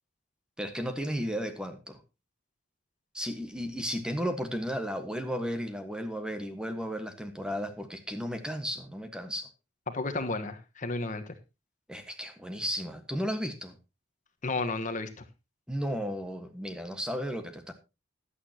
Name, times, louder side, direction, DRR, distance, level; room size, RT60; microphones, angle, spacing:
voice 1, 0.6-2.0 3.1-9.5 11.9-13.8 15.7-17.7, equal, 5° right, 7 dB, 1.4 m, -34 dB
voice 2, 9.9-11.3 14.4-15.2, left 3 dB, 40° left, 8 dB, 1.3 m, -32 dB
15.5 x 11.5 x 2.9 m, 0.27 s
head